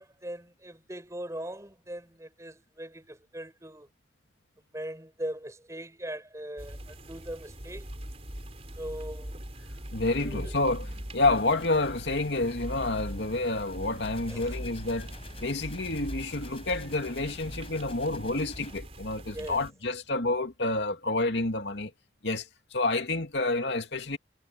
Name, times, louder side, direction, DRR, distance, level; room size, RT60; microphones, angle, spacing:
voice 1, 0.0-3.9 4.7-7.9 8.7-9.4 10.1-10.5 14.3-14.6 19.3-19.6, right 1 dB, 15° right, 4.8 m, -40 dB
sound 1, 6.6-19.7, equal, 35° right, 4.8 m, -41 dB
voice 2, 9.9-21.9 22.2-24.2, left 2 dB, 70° left, 2.5 m, -29 dB
sound 2, 11.4-18.8, left 2 dB, 30° left, 7.7 m, -49 dB
head